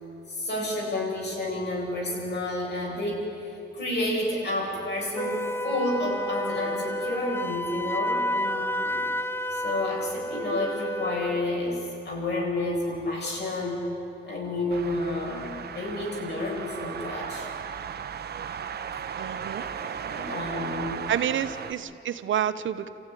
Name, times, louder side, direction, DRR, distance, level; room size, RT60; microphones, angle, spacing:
voice 1, 0.3-9.0 9.5-13.9 14.2-17.5 19.6-21.1 21.5-21.6, left 2 dB, 60° left, -2 dB, 7.9 m, -30 dB
Wind instrument woodwind instrument, 5.2-11.5, equal, 10° left, 0.5 m, -30 dB
sound 1, 14.7-21.7, right 7 dB, 55° right, 1.0 m, -36 dB
voice 2, 19.2-19.6 21.1-22.9, right 9 dB, 80° right, 12 dB, 1.1 m, -29 dB
30.0 x 15.0 x 10.0 m, 2.9 s
wide cardioid pair, 150°, 20 cm